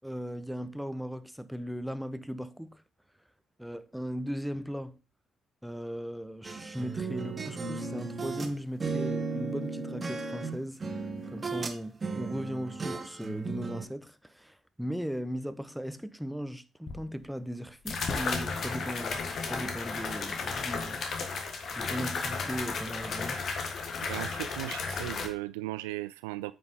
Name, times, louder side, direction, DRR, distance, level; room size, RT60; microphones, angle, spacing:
voice 1, 0.0-2.8 3.6-5.0 5.6-21.0 21.7-23.4, equal, 5° right, 0.9 m, -38 dB
sound 1, 6.4-8.5 8.8-11.8 12.0-13.9, right 4 dB, 35° right, 1.5 m, -35 dB
sound 2, 16.9-17.0 17.9-25.3, left 4 dB, 55° left, 1.5 m, -34 dB
voice 2, 24.1-26.5, right 17 dB, 80° right, 0.3 m, -37 dB
9.0 x 6.2 x 3.6 m
hypercardioid pair, 45°, 0 cm